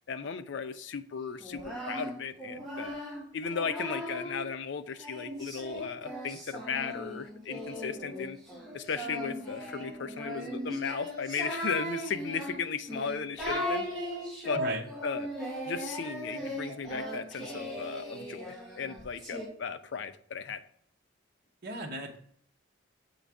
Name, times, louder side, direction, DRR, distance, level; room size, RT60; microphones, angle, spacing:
voice 1, 0.1-3.0 3.3-8.4 8.7-13.8 14.4-14.6 15.0-15.3 15.7-20.6, left 6 dB, 65° left, 11 dB, 0.4 m, -36 dB
Singing, 1.4-4.4 5.0-19.5, equal, ahead, 1.4 m, -38 dB
voice 2, 21.6-22.2, right 2 dB, 50° right, 0 dB, 0.8 m, -36 dB
7.2 x 3.9 x 3.4 m, 0.63 s
head